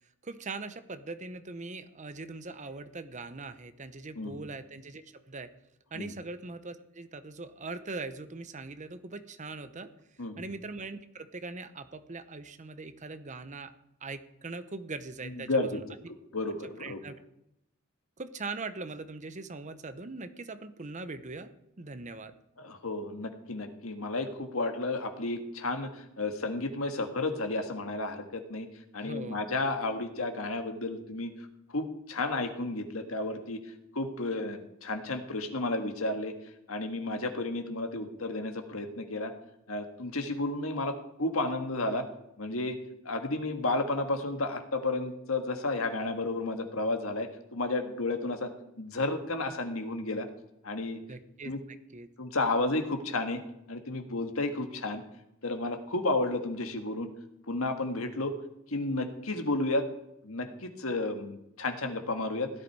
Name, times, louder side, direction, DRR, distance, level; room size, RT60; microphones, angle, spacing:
voice 1, 0.2-5.5 5.9-9.9 10.4-13.7 14.0-15.8 16.8-17.1 18.2-21.5 21.8-22.3 29.0-29.4 51.1-51.5 51.9-52.1, right 3 dB, 35° right, 11 dB, 0.8 m, -41 dB
voice 2, 15.2-15.8 16.3-17.0 22.6-28.7 28.9-31.3 31.7-33.6 33.9-36.3 36.7-39.3 39.7-42.0 42.4-42.8 43.1-48.5 48.8-50.3 50.6-51.0 51.5-51.6 52.2-53.4 53.7-55.0 55.4-57.1 57.5-58.4 58.7-59.9 60.2-62.5, left 2 dB, 70° left, 6 dB, 1.7 m, -32 dB
16.5 x 11.5 x 4.7 m, 0.83 s
head